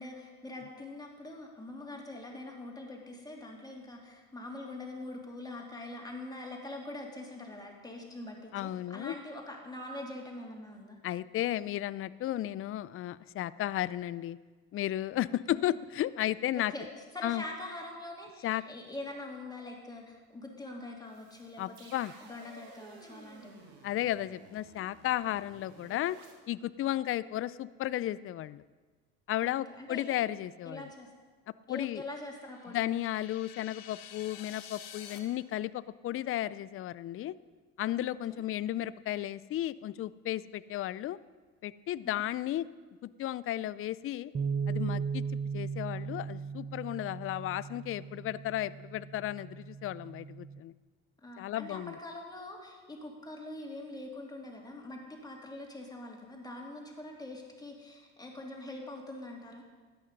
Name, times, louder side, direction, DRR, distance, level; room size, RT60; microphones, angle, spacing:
voice 1, 0.0-11.0 15.5-15.8 16.5-21.9 22.2-23.6 29.4-30.1 30.6-31.1 31.7-32.9 38.3-38.4 42.0-42.2 51.2-59.6, left 2 dB, 10° left, 0 dB, 2.8 m, -44 dB
voice 2, 8.5-9.1 11.0-14.4 14.7-16.7 17.2-17.4 18.4-18.6 21.6-22.1 23.8-26.2 26.5-28.6 29.3-30.9 31.7-32.0 32.7-37.3 37.8-41.2 41.6-42.7 43.0-44.3 44.7-45.2 45.5-50.7 51.4-52.0, left 13 dB, 40° left, 18 dB, 0.4 m, -34 dB
sound 1, 21.0-26.3, right 4 dB, 90° right, 1.9 m, -55 dB
sound 2, 32.4-35.2, left 9 dB, 70° left, 1.4 m, -49 dB
sound 3, 44.3-50.6, right 6 dB, 25° right, 0.8 m, -37 dB
13.0 x 9.3 x 5.3 m, 1.4 s
supercardioid pair, 85°, 34 cm